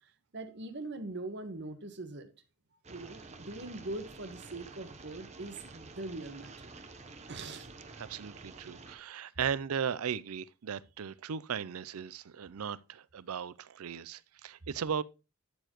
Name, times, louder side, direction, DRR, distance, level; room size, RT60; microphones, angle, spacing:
voice 1, 0.3-2.3 2.9-6.7 7.3-7.7, right 2 dB, 50° right, 1.4 m, -42 dB
sound 1, 2.8-9.0, right 3 dB, 30° right, 0.9 m, -50 dB
voice 2, 8.0-15.0, right 7 dB, 80° right, 0.5 m, -37 dB
12.0 x 6.9 x 3.0 m
head